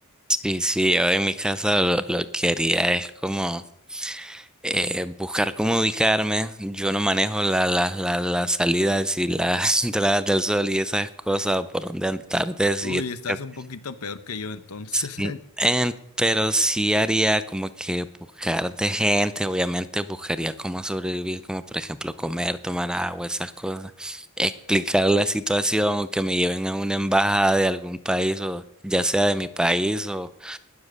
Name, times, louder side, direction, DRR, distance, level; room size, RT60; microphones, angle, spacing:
voice 1, 0.4-3.6 3.9-13.0 13.3-13.4 14.9-15.3 15.6-18.1 18.4-30.6, right 1 dB, 5° right, 13 dB, 0.5 m, -24 dB
voice 2, 12.8-15.4, left 4 dB, 85° left, 14 dB, 1.0 m, -34 dB
19.5 x 7.3 x 6.5 m, 0.73 s
head